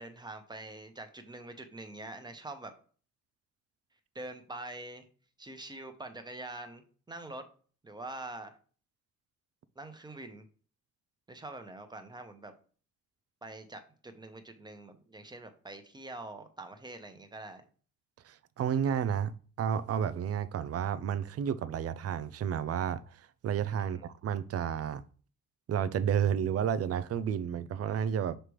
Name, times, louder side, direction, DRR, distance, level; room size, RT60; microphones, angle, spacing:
voice 1, 0.0-2.7 4.1-5.0 5.4-7.5 7.8-8.5 9.8-10.5 11.3-12.5 13.4-17.6 23.9-24.0, right 2 dB, 15° right, 1.1 m, -44 dB
voice 2, 18.2-25.0 25.7-28.4, right 8 dB, 50° right, 0.6 m, -31 dB
5.8 x 3.4 x 4.8 m
cardioid pair, 90°, 30 cm